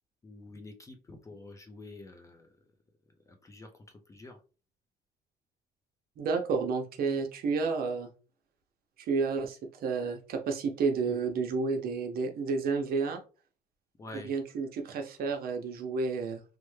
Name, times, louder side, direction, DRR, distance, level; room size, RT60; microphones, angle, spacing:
voice 1, 0.2-2.5 3.4-3.7 4.1-4.4 14.0-14.3, left 2 dB, 20° left, 4 dB, 0.5 m, -47 dB
voice 2, 6.2-8.1 9.0-13.2 14.1-16.4, right 4 dB, 60° right, 4 dB, 0.7 m, -31 dB
3.2 x 2.1 x 3.2 m, 0.34 s
cardioid pair, 140°, 17 cm